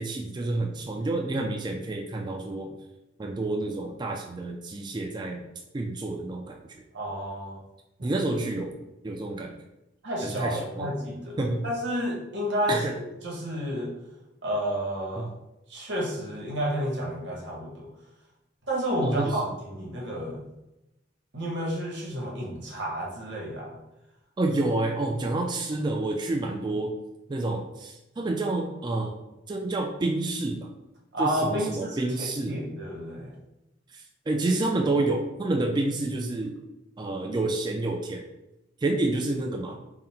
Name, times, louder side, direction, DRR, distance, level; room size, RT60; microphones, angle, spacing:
voice 1, 0.0-2.7 3.2-5.4 5.7-6.6 8.0-8.7 9.0-9.5 10.2-10.9 11.4-11.7 12.7-13.0 15.2-15.3 19.0-19.5 24.4-26.9 27.3-29.1 29.5-30.7 31.2-32.6 33.9-36.6 37.0-38.2 38.8-39.8, right 2 dB, 25° right, 2 dB, 0.3 m, -29 dB
voice 2, 6.9-7.6 8.0-8.1 10.0-11.4 11.6-12.8 13.2-13.9 14.4-15.3 15.7-17.9 18.7-20.4 21.3-23.8 31.1-33.4, equal, 70° right, -3 dB, 1.2 m, -31 dB
3.8 x 2.1 x 4.3 m, 0.94 s
head